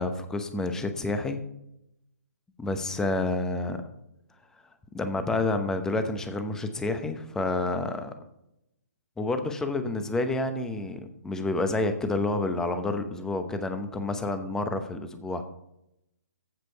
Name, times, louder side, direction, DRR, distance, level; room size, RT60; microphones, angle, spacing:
voice 1, 0.0-1.4 2.6-3.8 4.9-8.1 9.2-15.4, left 2 dB, 5° left, 8 dB, 0.8 m, -29 dB
15.0 x 5.1 x 4.6 m, 0.81 s
hypercardioid pair, 145°, 9 cm